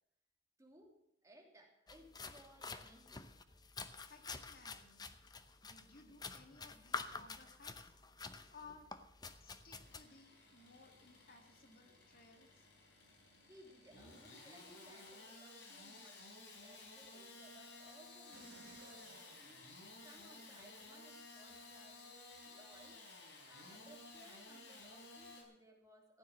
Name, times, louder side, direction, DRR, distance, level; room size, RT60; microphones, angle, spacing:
voice 1, 0.6-0.9 1.2-3.3 13.4-23.0 23.5-26.2, right 1 dB, 15° right, 0 dB, 3.0 m, -63 dB
sound 1, 1.9-10.0, left 4 dB, 20° left, 0.7 m, -49 dB
voice 2, 4.0-5.1 5.6-7.9 8.5-8.9 9.4-12.7, left 4 dB, 55° left, 5 dB, 1.9 m, -60 dB
Engine starting / Sawing, 9.6-25.4, left 2 dB, 80° left, 4.1 m, -56 dB
sound 2, 18.3-20.4 20.9-21.0, right 3 dB, 75° right, 1.2 m, -61 dB
15.0 x 9.4 x 7.2 m, 0.78 s
head